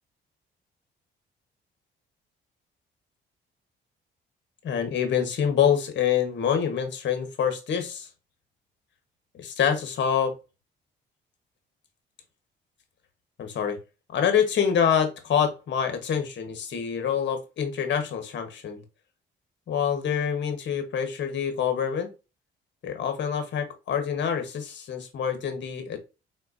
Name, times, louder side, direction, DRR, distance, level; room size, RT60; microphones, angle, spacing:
voice 1, 4.6-8.1 9.3-10.4 13.4-13.8 14.1-18.8 19.7-22.1 22.8-26.0, left 8 dB, 65° left, 7 dB, 1.3 m, -26 dB
4.4 x 4.0 x 2.7 m, 0.29 s
cardioid pair, 90°, 20 cm